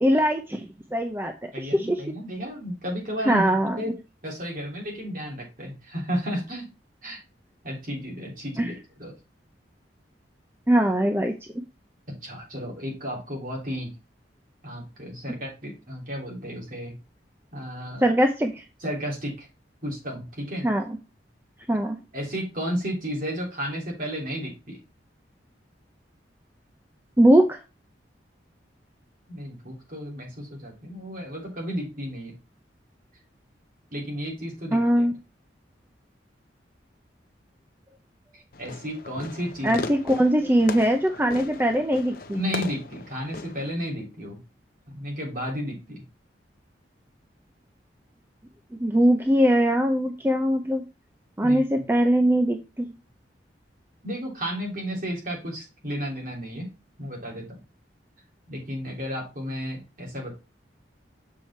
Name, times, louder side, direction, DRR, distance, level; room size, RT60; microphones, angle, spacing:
voice 1, 0.0-2.0 3.3-3.8 8.6-8.7 10.7-11.3 18.0-18.6 20.6-21.0 21.7-22.0 27.2-27.6 34.7-35.1 39.6-42.4 48.8-50.8 51.4-52.9, equal, 10° right, 5 dB, 0.6 m, -21 dB
voice 2, 1.5-3.4 3.8-3.9 4.2-6.7 7.0-7.2 7.6-8.7 9.0-9.1 12.2-13.9 14.6-16.9 17.5-18.0 18.8-19.5 19.8-20.7 22.1-24.8 29.3-32.3 33.9-35.1 38.3-39.8 42.3-44.4 44.9-46.0 51.4-51.8 54.0-56.7 57.0-57.6 58.5-60.3, equal, 45° right, -1 dB, 3.2 m, -33 dB
Fireworks, 38.5-43.7, left 3 dB, 50° left, 0.7 m, -38 dB
7.4 x 4.9 x 4.3 m, 0.29 s
head